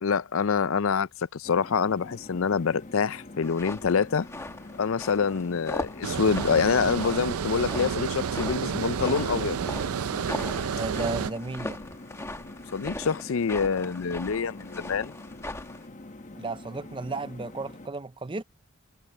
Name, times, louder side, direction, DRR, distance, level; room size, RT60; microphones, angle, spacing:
voice 1, 0.0-4.3 4.8-9.6 12.7-15.1, left 5 dB, 70° left, 0.5 m, -26 dB
sound 1, 1.4-17.9, left 2 dB, 35° left, 1.0 m, -45 dB
sound 2, 3.4-15.9, left 2 dB, 15° left, 1.1 m, -40 dB
Water, 6.0-11.3, right 7 dB, 85° right, 0.5 m, -30 dB
voice 2, 10.8-11.8 16.4-18.4, right 3 dB, 25° right, 0.5 m, -34 dB
head